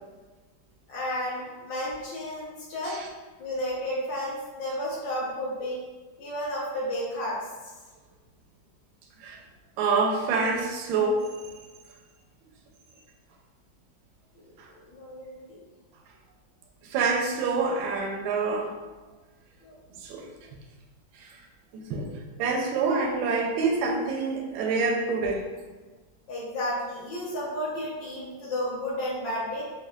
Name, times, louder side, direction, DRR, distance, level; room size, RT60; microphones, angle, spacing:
voice 1, 0.9-3.0 3.4-5.8 6.2-7.7 14.7-15.6 19.6-19.7 26.3-29.6, left 1 dB, 65° left, -6 dB, 1.7 m, -32 dB
voice 2, 9.8-11.3 14.6-14.7 16.8-18.7 20.0-20.2 21.1-21.4 21.7-22.1 22.4-25.4, right 4 dB, 80° right, 1 dB, 1.3 m, -26 dB
5.2 x 2.2 x 2.3 m, 1.3 s
omnidirectional pair, 2.2 m